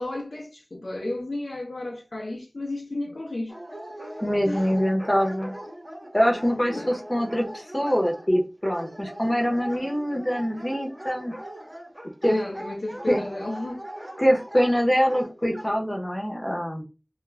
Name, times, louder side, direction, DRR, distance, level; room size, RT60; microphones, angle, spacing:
voice 1, 0.0-3.5 4.5-4.7 6.7-6.9 12.3-13.8, left 2 dB, 85° left, 0.5 m, -32 dB
Dog, 3.5-15.7, right 1 dB, 30° right, 0.9 m, -40 dB
voice 2, 4.2-5.5 6.1-11.3 12.2-12.4 13.1-13.2 14.2-16.8, equal, 25° left, 0.7 m, -24 dB
2.3 x 2.2 x 3.1 m
wide cardioid pair, 40°, 0 cm